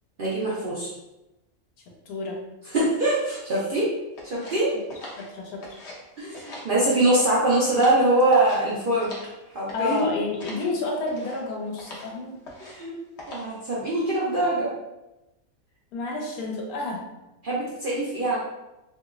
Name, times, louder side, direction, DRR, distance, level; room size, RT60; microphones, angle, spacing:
voice 1, 0.2-0.9 2.7-3.9 4.2-4.7 6.2-9.1 9.5-10.1 12.6-12.9 13.3-14.7 17.4-18.4, right 1 dB, 50° right, -7 dB, 0.6 m, -23 dB
voice 2, 2.1-2.4 5.2-5.6 9.7-12.4 15.9-17.1, left 3 dB, 80° left, -1 dB, 1.2 m, -30 dB
sound 1, 4.2-6.0 6.3-7.3 7.6-9.3 9.7-10.0 10.4-10.7 11.0-11.4 11.8-12.1 12.4-12.8 13.2-13.6, left 2 dB, 55° left, 0.9 m, -42 dB
2.9 x 2.9 x 2.4 m, 0.96 s
omnidirectional pair, 1.5 m